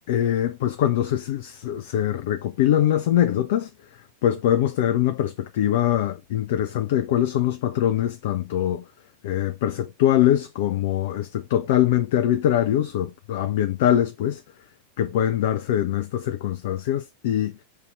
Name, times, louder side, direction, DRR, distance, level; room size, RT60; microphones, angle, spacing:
voice 1, 0.1-3.7 4.2-8.8 9.2-14.4 15.0-17.5, left 11 dB, 50° left, 0.4 m, -23 dB
5.4 x 2.7 x 3.3 m
figure-of-eight pair, 90°, 0 cm